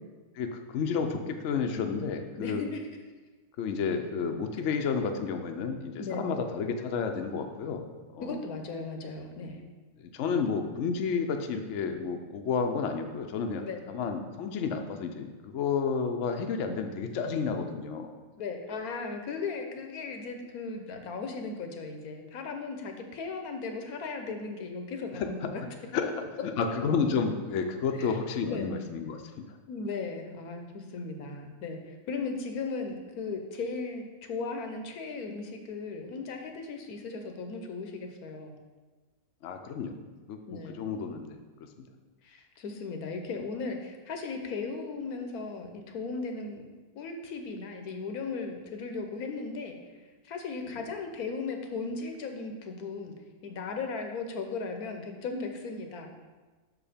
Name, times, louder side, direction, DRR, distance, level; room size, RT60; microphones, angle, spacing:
voice 1, 0.3-2.6 3.6-7.8 8.1-8.4 10.0-18.1 25.1-25.5 25.9-26.1 26.4-29.6 39.4-40.0 40.3-41.4 41.8-41.9 50.7-50.8, left 5 dB, 65° left, 5 dB, 0.8 m, -31 dB
voice 2, 2.4-2.8 6.0-6.3 8.2-9.6 13.6-13.8 18.4-25.6 28.0-28.1 28.5-28.7 29.7-38.5 40.5-40.8 42.2-46.6 46.9-49.8 50.2-53.1 53.4-56.1, left 4 dB, 80° left, 4 dB, 1.3 m, -37 dB
6.3 x 4.9 x 5.0 m, 1.3 s
omnidirectional pair, 1.6 m